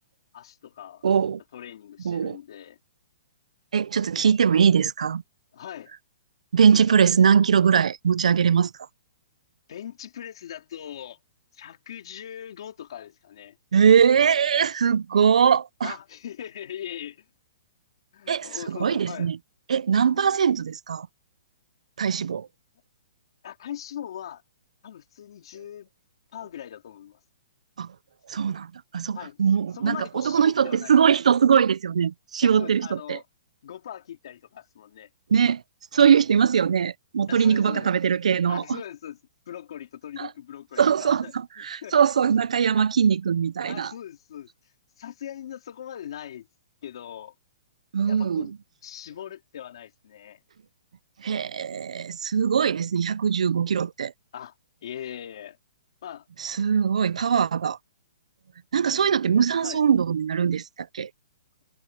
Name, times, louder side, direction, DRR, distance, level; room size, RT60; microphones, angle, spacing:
voice 1, 0.3-1.1 1.5-2.8 5.5-5.9 9.7-11.2 11.5-13.6 15.8-17.3 18.1-19.3 20.1-20.2 23.4-24.4 24.8-25.9 26.3-27.2 28.4-28.5 29.1-29.4 29.7-30.9 32.4-33.2 33.6-35.1 37.3-37.9 38.5-39.2 39.5-42.0 43.6-44.5 45.0-46.5 46.8-47.3 48.0-48.5 48.8-50.4 54.3-54.5 54.8-55.6 56.0-56.3 59.6-59.8, left 10 dB, 50° left, 3.4 m, -40 dB
voice 2, 1.0-1.4 2.0-2.4 3.7-5.2 6.5-8.7 13.7-15.9 18.3-19.4 19.7-21.1 22.0-22.5 27.8-27.9 28.3-33.2 35.3-35.6 35.9-38.6 40.2-40.3 40.8-43.9 47.9-48.5 51.2-54.1 56.4-57.8 58.7-61.1, right 7 dB, 80° right, 0.6 m, -21 dB
hypercardioid pair, 175°, 4 cm